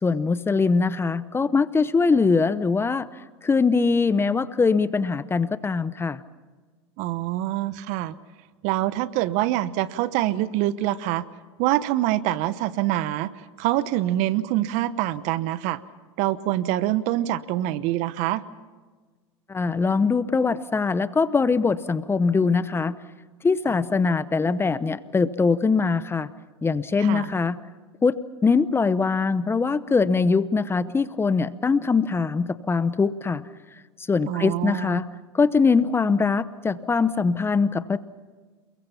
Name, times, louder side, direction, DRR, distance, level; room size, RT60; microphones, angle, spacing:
voice 1, 0.0-3.1 3.4-6.2 19.5-23.0 23.4-26.3 26.6-27.6 28.0-33.4 34.1-35.1 35.3-38.0, left 4 dB, 15° left, 16 dB, 0.8 m, -22 dB
voice 2, 7.0-8.1 8.6-11.3 11.6-15.8 16.2-18.4 27.0-27.3 34.2-35.0, right 14 dB, 60° right, 16 dB, 1.0 m, -25 dB
29.0 x 22.5 x 5.8 m, 1.4 s
hypercardioid pair, 95°, 14 cm